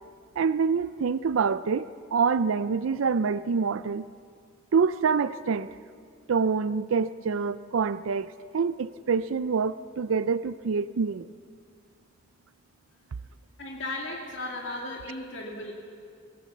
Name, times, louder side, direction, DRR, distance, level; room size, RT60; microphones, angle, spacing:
voice 1, 0.4-4.1 4.7-5.7 6.3-11.3, right 5 dB, 85° right, 15 dB, 0.5 m, -26 dB
voice 2, 13.6-15.7, left 2 dB, 65° left, 0 dB, 2.3 m, -35 dB
24.5 x 17.0 x 7.3 m, 2.2 s
head